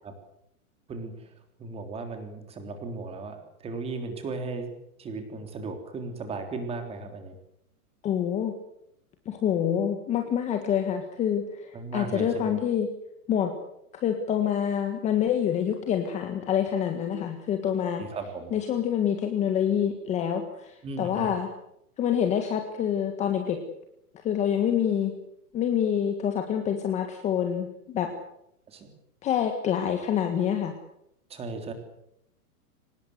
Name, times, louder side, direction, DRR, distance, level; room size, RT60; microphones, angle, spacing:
voice 1, 0.9-1.3 1.6-4.7 5.0-7.4 11.7-12.6 18.0-18.5 20.8-21.3 28.7-28.9 31.3-31.7, right 3 dB, 15° right, 6 dB, 3.5 m, -36 dB
voice 2, 8.0-8.5 9.2-12.9 13.3-13.5 14.0-18.0 18.5-21.5 22.0-23.6 24.2-25.1 25.5-28.1 29.2-30.7, left 9 dB, 15° left, 5 dB, 1.6 m, -26 dB
24.5 x 20.0 x 8.0 m, 0.77 s
hypercardioid pair, 165°, 45 cm